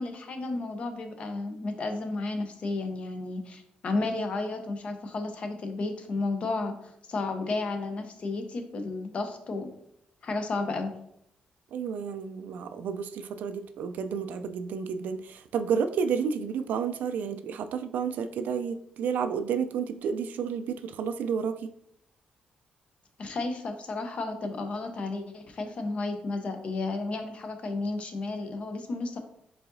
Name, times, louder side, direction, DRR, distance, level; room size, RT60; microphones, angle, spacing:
voice 1, 0.0-9.7 10.2-10.9 23.2-29.2, left 3 dB, 45° left, 0.6 m, -32 dB
voice 2, 11.7-21.7, right 6 dB, 80° right, 0.3 m, -31 dB
4.7 x 3.8 x 2.6 m
cardioid pair, 145°, 3 cm